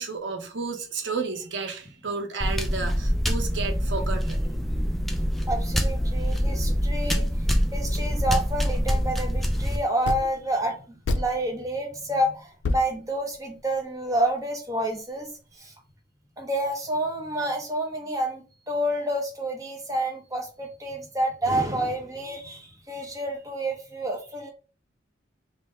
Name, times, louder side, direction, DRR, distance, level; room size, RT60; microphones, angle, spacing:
voice 1, 0.0-4.4, right 4 dB, 80° right, 0.8 m, -32 dB
sound 1, 2.4-9.8, equal, ahead, 0.3 m, -25 dB
voice 2, 5.5-7.3 7.7-10.8 11.1-15.3 15.6-15.7 16.4-18.4 18.7-24.5, right 1 dB, 20° right, 0.8 m, -28 dB
sound 2, 10.0-10.5 11.0-11.7 12.1-12.2 12.6-13.8, left 2 dB, 80° left, 0.4 m, -29 dB
3.4 x 2.2 x 4.2 m
head